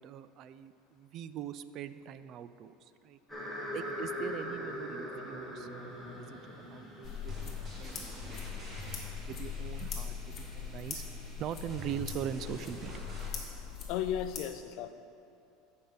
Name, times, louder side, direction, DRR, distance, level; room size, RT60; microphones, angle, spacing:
voice 1, 0.0-3.2 3.7-6.4 6.7-8.7 9.3-11.0 11.4-13.0, right 9 dB, 45° right, 13 dB, 0.4 m, -42 dB
sound 1, 3.3-9.1, equal, ahead, 1.9 m, -41 dB
sound 2, 7.0-14.4, left 7 dB, 30° left, 1.7 m, -41 dB
sound 3, 7.3-13.3, left 1 dB, 30° right, 1.7 m, -46 dB
voice 2, 13.9-14.9, left 10 dB, 60° left, 11 dB, 0.4 m, -34 dB
13.5 x 5.5 x 4.0 m, 2.7 s
supercardioid pair, 125°, 0 cm